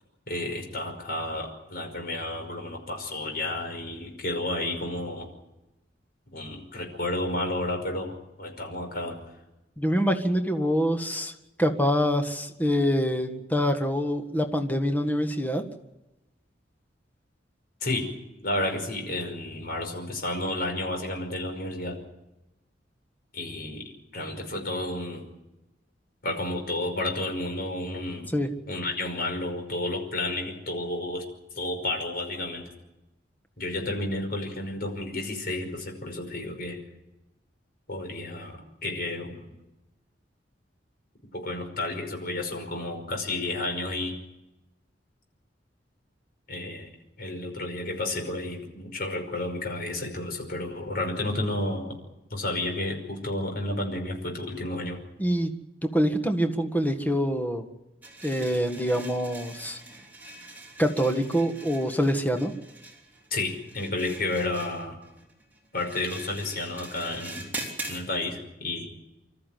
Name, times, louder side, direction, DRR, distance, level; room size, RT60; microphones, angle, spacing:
voice 1, 0.3-5.3 6.3-9.2 17.8-18.1 18.4-22.0 23.3-25.3 26.2-28.3 28.7-31.3 31.5-32.7 33.6-36.8 37.9-39.5 41.3-44.2 46.5-46.9 47.2-51.9 52.3-55.0 63.3-65.0 65.7-67.5 67.9-68.9, left 2 dB, 55° left, 3 dB, 5.5 m, -31 dB
voice 2, 9.8-11.3 11.6-15.6 28.3-28.5 55.2-55.5 55.8-57.6 58.2-59.8 60.8-62.5, equal, 10° left, 5 dB, 1.7 m, -25 dB
sound 1, 58.0-68.0, right 2 dB, 10° right, 4.1 m, -42 dB
26.0 x 13.5 x 9.4 m, 0.97 s
head